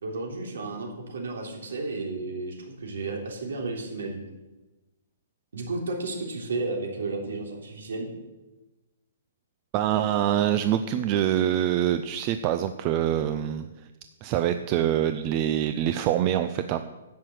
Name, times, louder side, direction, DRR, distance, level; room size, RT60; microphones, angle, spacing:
voice 1, 0.0-4.2 5.5-8.1, right 3 dB, 80° right, 1 dB, 3.5 m, -33 dB
voice 2, 9.7-13.7 14.2-16.9, right 11 dB, 25° right, 10 dB, 0.4 m, -25 dB
11.0 x 7.6 x 7.8 m, 1.1 s
hypercardioid pair, 175°, 0 cm